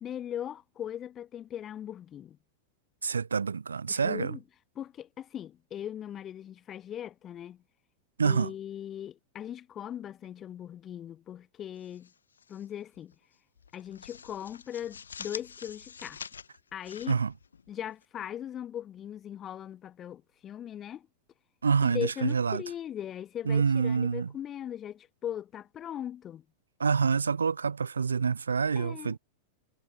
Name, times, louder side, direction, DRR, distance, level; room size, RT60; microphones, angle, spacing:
voice 1, 0.0-2.4 3.9-4.4 4.7-7.6 8.2-12.1 12.5-13.1 13.7-16.2 16.7-17.2 17.7-21.1 21.8-26.4 28.7-29.1, left 10 dB, 25° left, 1.4 m, -39 dB
voice 2, 3.0-4.4 8.2-8.5 17.1-17.3 21.6-22.6 23.5-24.3 26.8-29.2, right 5 dB, 75° right, 0.4 m, -27 dB
sound 1, 11.8-12.7 13.0-13.2 13.6-18.0, left 6 dB, 70° left, 0.9 m, -46 dB
figure-of-eight pair, 90°, 0 cm